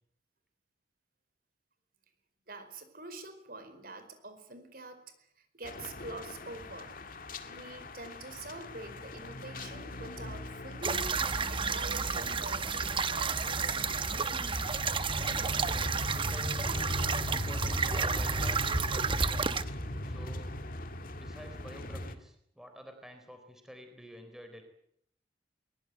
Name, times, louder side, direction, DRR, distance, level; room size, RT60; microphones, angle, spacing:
voice 1, 2.5-5.0 5.4-6.9 7.5-11.1 11.5-13.9, right 2 dB, 50° right, 9 dB, 4.7 m, -46 dB
sound 1, 5.6-22.1, left 1 dB, 45° left, 2.2 m, -39 dB
sound 2, 10.8-19.6, right 5 dB, 25° right, 0.9 m, -31 dB
voice 2, 16.1-19.5 20.0-20.5 21.1-24.6, equal, ahead, 6 dB, 4.0 m, -49 dB
23.0 x 22.0 x 9.2 m, 0.70 s
head